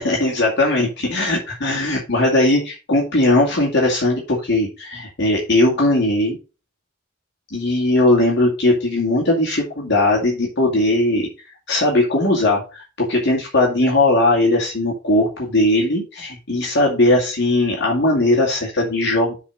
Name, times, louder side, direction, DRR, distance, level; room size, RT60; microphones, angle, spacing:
voice 1, 0.0-6.4 7.5-11.3 11.7-19.4, left 2 dB, 65° left, -2 dB, 2.4 m, -18 dB
7.1 x 4.3 x 6.5 m, 0.32 s
head